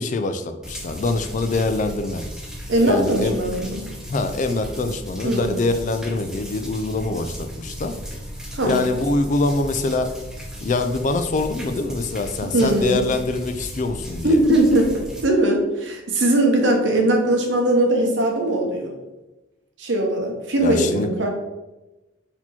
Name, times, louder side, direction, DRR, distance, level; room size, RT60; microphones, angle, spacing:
voice 1, 0.0-2.2 2.8-3.4 4.1-7.9 8.6-10.1 10.6-14.4 20.6-21.1, left 3 dB, 40° left, 8 dB, 0.4 m, -24 dB
sound 1, 0.6-15.2, equal, 5° right, 0.6 m, -36 dB
voice 2, 2.7-3.9 5.2-5.5 8.5-8.8 12.4-13.0 14.2-18.9 19.8-21.3, right 1 dB, 70° right, 1 dB, 1.0 m, -20 dB
4.3 x 2.9 x 4.2 m, 1.0 s
head